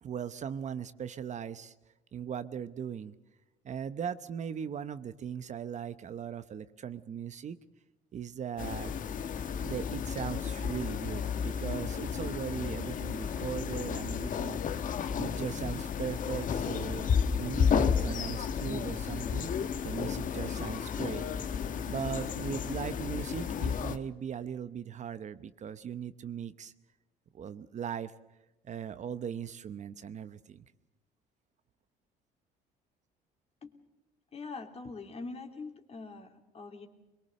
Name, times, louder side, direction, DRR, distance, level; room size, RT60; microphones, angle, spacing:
voice 1, 0.0-1.7 2.1-3.1 3.6-7.6 8.1-8.9 9.6-14.6 15.2-19.5 19.8-21.3 21.8-26.7 27.3-28.1 28.6-30.6, right 8 dB, 45° right, 13 dB, 0.9 m, -38 dB
sound 1, 8.6-24.0, left 7 dB, 50° left, 1.2 m, -32 dB
voice 2, 34.3-36.9, left 3 dB, 35° left, 4 dB, 3.1 m, -43 dB
22.5 x 22.5 x 6.8 m, 1.0 s
cardioid pair, 110°, 17 cm